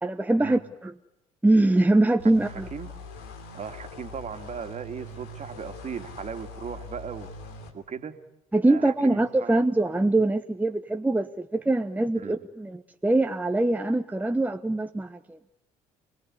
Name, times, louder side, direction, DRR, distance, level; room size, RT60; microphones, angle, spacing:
voice 1, 0.0-0.9 1.4-2.7 8.5-15.4, right 2 dB, 10° right, 8 dB, 1.0 m, -23 dB
sound 1, 2.2-7.7, left 1 dB, 70° left, 2.9 m, -42 dB
voice 2, 2.5-2.9 3.5-7.3 7.7-8.2 8.6-9.6 12.1-12.3, right 6 dB, 40° right, 8 dB, 2.4 m, -37 dB
27.5 x 18.5 x 9.7 m, 0.83 s
figure-of-eight pair, 50°, 18 cm